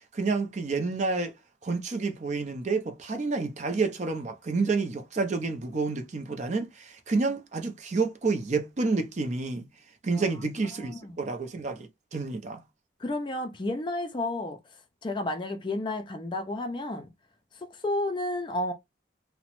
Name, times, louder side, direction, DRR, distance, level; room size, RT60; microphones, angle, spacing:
voice 1, 0.1-1.3 1.6-9.7 10.0-12.6, right 3 dB, 40° right, 0.5 m, -29 dB
voice 2, 13.0-14.6 15.0-17.1 17.5-18.7, left 2 dB, 25° left, 0.4 m, -31 dB
2.9 x 2.1 x 2.9 m
head